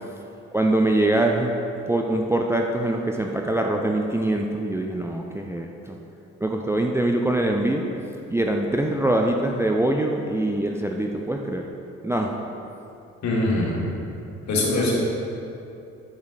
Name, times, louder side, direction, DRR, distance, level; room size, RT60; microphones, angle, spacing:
voice 1, 0.5-6.0 6.4-7.8 8.3-11.7 12.0-12.3, right 1 dB, 5° right, 2 dB, 0.6 m, -23 dB
voice 2, 13.2-13.8 14.5-14.9, left 2 dB, 50° left, -3 dB, 2.2 m, -22 dB
10.0 x 6.4 x 4.0 m, 2.7 s
figure-of-eight pair, 40°, 36 cm